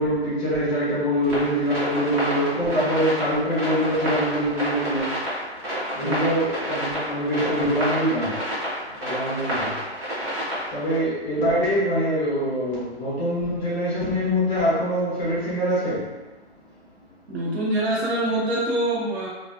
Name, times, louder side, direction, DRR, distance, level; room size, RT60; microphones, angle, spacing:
voice 1, 0.0-5.2 5.9-8.3 9.0-9.7 10.7-16.0, equal, 10° left, -10 dB, 0.6 m, -24 dB
sound 1, 1.2-11.0, equal, 25° right, 0.9 m, -29 dB
voice 2, 17.3-19.3, right 1 dB, 70° right, -7 dB, 1.1 m, -25 dB
2.5 x 2.4 x 2.4 m, 1.2 s
hypercardioid pair, 150°, 34 cm